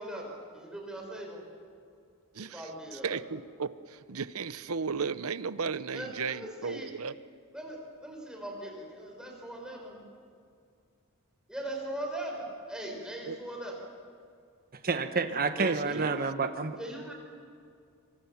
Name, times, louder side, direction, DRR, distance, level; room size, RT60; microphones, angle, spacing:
voice 1, 0.0-1.4 2.5-3.2 5.9-6.9 7.5-10.0 11.5-13.9 15.8-16.1 16.8-17.1, right 1 dB, 5° right, 5.3 m, -40 dB
voice 2, 2.9-7.2 13.3-13.4 15.6-16.2, right 5 dB, 70° right, 0.8 m, -35 dB
voice 3, 14.8-16.8, right 4 dB, 45° right, 1.3 m, -29 dB
25.5 x 24.0 x 7.2 m
head